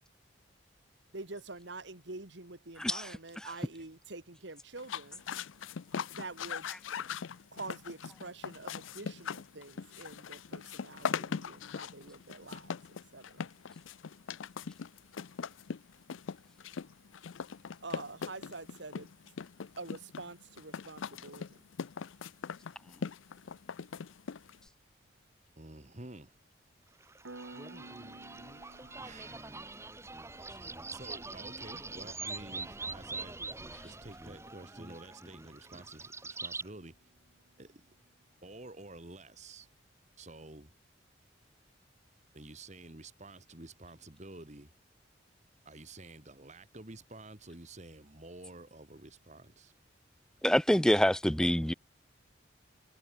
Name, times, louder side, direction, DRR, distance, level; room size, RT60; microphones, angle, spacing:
voice 1, 1.1-5.2 6.1-6.7 7.5-13.5 17.8-19.1 19.8-21.6, right 3 dB, 65° right, 2.1 m, -46 dB
sound 1, 4.8-24.7, left 6 dB, 85° left, 0.5 m, -40 dB
voice 2, 25.6-26.4 29.0-29.7 30.9-33.5 33.8-37.1 37.6-37.9 38.4-39.7 40.2-40.7 42.3-44.7 45.7-49.7, right 2 dB, 35° right, 2.1 m, -50 dB
sound 2, 27.0-36.7, right 3 dB, 15° right, 1.5 m, -44 dB
Piano, 27.3-37.6, right 2 dB, 80° right, 1.8 m, -57 dB
voice 3, 50.4-51.7, equal, 5° left, 0.5 m, -25 dB
head